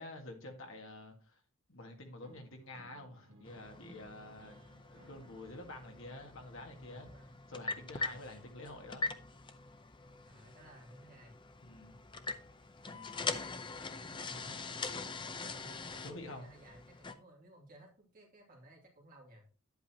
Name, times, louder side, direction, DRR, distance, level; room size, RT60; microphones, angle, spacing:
voice 1, 0.0-1.4 1.7-7.1 7.5-9.1 11.6-12.0 12.8-13.1 14.4-14.5 16.0-16.5, left 2 dB, 60° left, 3 dB, 1.8 m, -49 dB
sound 1, 2.2-8.2, right 1 dB, 60° right, 2.0 m, -64 dB
sound 2, 3.5-17.1, left 3 dB, 20° left, 0.5 m, -43 dB
voice 2, 6.7-7.5 7.9-8.4 10.2-11.4 13.6-15.1 15.3-19.5, right 1 dB, 40° right, -1 dB, 2.7 m, -58 dB
9.6 x 8.1 x 2.9 m, 0.38 s
head